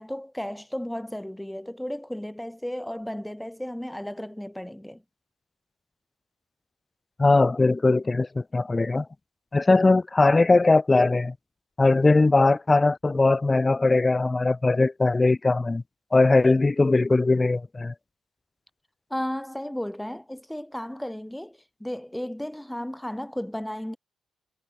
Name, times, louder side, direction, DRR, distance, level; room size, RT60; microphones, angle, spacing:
voice 1, 0.0-5.0 19.1-24.0, left 1 dB, 5° left, 0.9 m, -34 dB
voice 2, 7.2-9.1 9.5-11.3 11.8-15.8 16.1-17.9, left 3 dB, 20° left, 0.4 m, -20 dB
cardioid pair, 90°, 0 cm